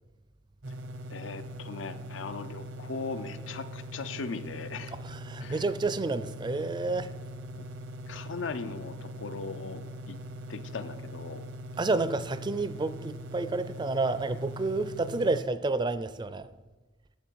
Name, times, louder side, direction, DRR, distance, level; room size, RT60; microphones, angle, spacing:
sound 1, 0.6-15.4, equal, 75° right, 0.7 m, -42 dB
voice 1, 1.1-4.9 5.4-5.6 7.6-7.7 8.1-10.2 10.5-11.5, left 4 dB, 90° left, 0.6 m, -39 dB
voice 2, 5.0-7.1 11.8-16.5, right 3 dB, 25° right, 0.4 m, -30 dB
11.5 x 7.6 x 4.6 m
head